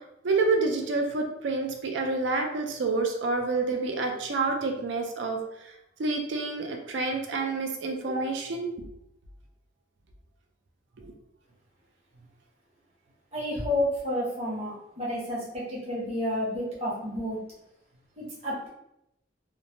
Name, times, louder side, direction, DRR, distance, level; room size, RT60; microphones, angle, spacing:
voice 1, 0.2-5.7 6.0-8.7 11.0-11.1, right 3 dB, 80° right, 3 dB, 0.4 m, -28 dB
voice 2, 13.3-17.4 18.2-18.7, left 1 dB, 35° right, -6 dB, 1.0 m, -30 dB
3.1 x 2.0 x 2.6 m, 0.83 s
head